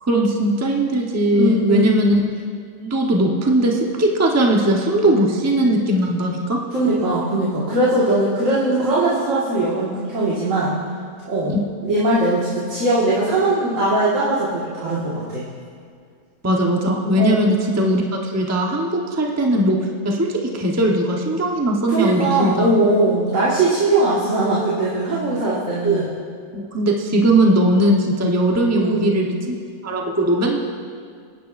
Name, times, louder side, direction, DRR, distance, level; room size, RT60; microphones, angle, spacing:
voice 1, 0.0-2.2 2.8-6.6 11.5-11.6 16.4-19.8 20.0-22.7 25.8-26.1 26.5-29.6 29.8-30.6, right 1 dB, 15° right, -1 dB, 0.9 m, -19 dB
voice 2, 1.3-1.9 6.7-10.8 11.3-11.5 11.8-15.4 17.2-17.4 21.9-26.1 28.8-29.1, right 2 dB, 60° right, -7 dB, 2.2 m, -20 dB
22.5 x 10.5 x 2.6 m, 2.2 s
omnidirectional pair, 1.6 m